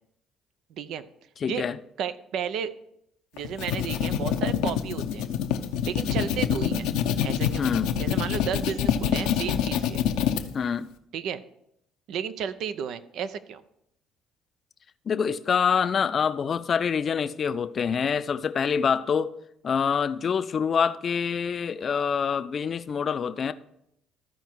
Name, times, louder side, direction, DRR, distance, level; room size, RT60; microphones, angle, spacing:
voice 1, 0.7-1.1 1.5-1.6 2.0-2.7 3.3-5.3 5.8-6.9 7.2-7.7 8.0-10.0 11.1-11.4 12.1-13.6, right 8 dB, 70° right, 0.6 m, -33 dB
voice 2, 1.4-1.8 7.6-7.9 10.5-10.9 15.1-19.3 19.6-23.5, left 6 dB, 45° left, 0.5 m, -26 dB
sound 1, 3.4-10.4, left 9 dB, 80° left, 0.7 m, -26 dB
14.0 x 4.7 x 4.6 m
supercardioid pair, 70°, 0 cm